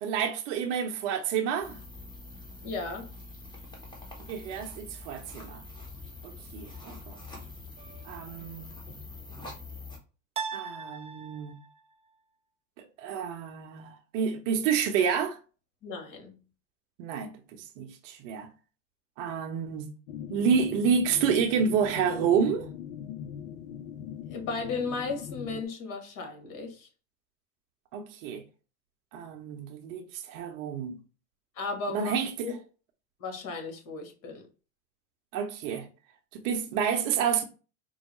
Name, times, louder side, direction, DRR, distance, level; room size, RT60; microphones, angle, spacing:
voice 1, 0.0-1.8 4.3-5.6 6.2-7.2 8.0-8.7 10.5-11.6 13.0-15.4 17.0-18.5 19.2-19.9 20.3-22.7 27.9-28.4 29.1-31.0 31.9-32.5 35.3-35.9 36.3-37.4, right 7 dB, 70° right, 0.8 m, -29 dB
sound 1, 1.6-10.0, left 3 dB, 10° left, 1.2 m, -45 dB
voice 2, 2.6-3.1 15.8-16.3 24.3-26.9 31.5-32.2 32.4-32.6 33.2-34.5, left 4 dB, 50° left, 1.5 m, -35 dB
sound 2, 7.8-8.5 10.4-11.8, right 6 dB, 15° right, 0.4 m, -39 dB
sound 3, 20.1-25.6, left 9 dB, 80° left, 0.5 m, -41 dB
4.5 x 2.1 x 3.0 m
hypercardioid pair, 95°, 39 cm